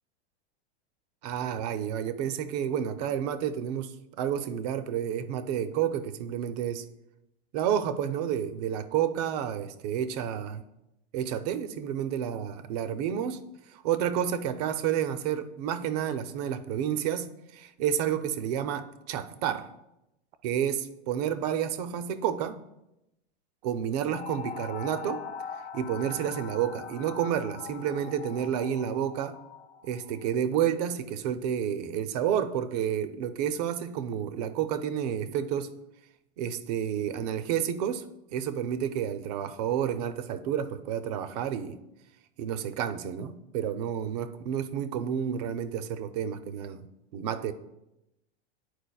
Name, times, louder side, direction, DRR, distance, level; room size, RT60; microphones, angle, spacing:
voice 1, 1.2-6.8 7.5-10.6 11.1-13.4 13.7-19.7 20.4-22.6 23.6-25.2 25.7-29.4 29.8-35.7 36.4-38.0 38.3-41.8 42.4-46.9 47.1-47.5, right 9 dB, 40° right, 11 dB, 0.4 m, -30 dB
sound 1, 24.1-30.2, left 6 dB, 85° left, 0.8 m, -41 dB
10.5 x 4.5 x 2.3 m, 0.89 s
supercardioid pair, 155°, 32 cm